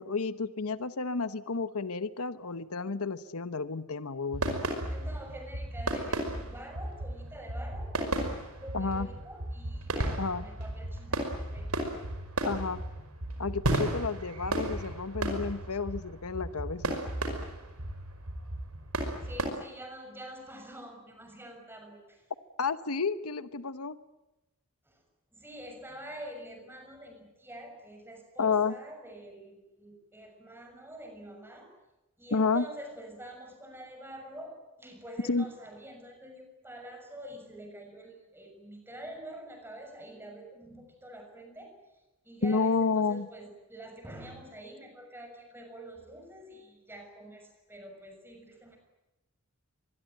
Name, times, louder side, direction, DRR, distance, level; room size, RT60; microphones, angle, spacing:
voice 1, 0.0-4.6 8.7-9.1 10.2-10.4 12.4-12.8 13.4-17.0 22.6-24.0 28.4-28.7 32.3-32.6 35.3-35.4 42.4-43.3, left 4 dB, 80° left, 13 dB, 1.0 m, -31 dB
sound 1, 4.3-19.5, right 1 dB, 85° right, 5.3 m, -34 dB
voice 2, 4.9-11.7 19.2-22.3 24.8-25.0 25.3-31.7 32.2-48.8, right 1 dB, 10° right, 4 dB, 6.5 m, -46 dB
25.5 x 21.0 x 9.1 m, 0.97 s
head